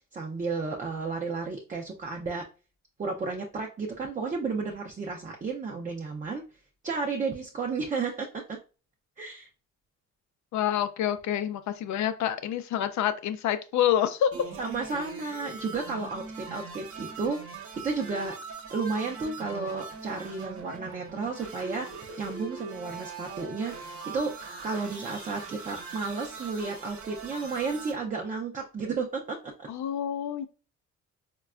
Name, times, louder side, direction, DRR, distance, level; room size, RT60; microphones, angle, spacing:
voice 1, 0.1-2.5 3.0-6.4 6.8-8.6 9.2-9.5 14.6-17.4 17.8-18.4 18.7-21.9 22.2-24.3 24.6-29.7, right 4 dB, 25° right, 1 dB, 0.4 m, -32 dB
voice 2, 10.5-14.3 29.7-30.5, left 10 dB, 70° left, 10 dB, 0.5 m, -27 dB
sound 1, 14.3-27.9, right 4 dB, 50° right, 0.9 m, -41 dB
4.0 x 2.2 x 2.3 m, 0.34 s
cardioid pair, 90°, 30 cm